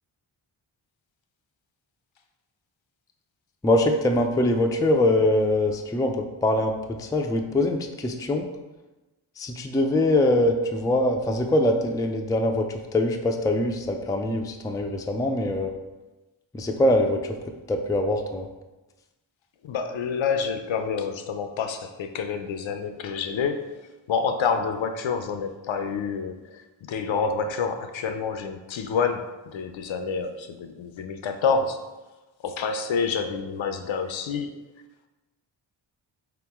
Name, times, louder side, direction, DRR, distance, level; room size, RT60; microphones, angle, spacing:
voice 1, 3.6-8.4 9.4-12.6 12.9-15.7 16.5-17.2 17.7-18.5, left 1 dB, 10° left, 3 dB, 0.3 m, -23 dB
voice 2, 19.6-23.7 24.1-26.6 26.9-31.8 32.4-34.5, left 5 dB, 65° left, 7 dB, 0.5 m, -28 dB
3.6 x 3.0 x 3.5 m, 1.1 s
cardioid pair, 40°, 50 cm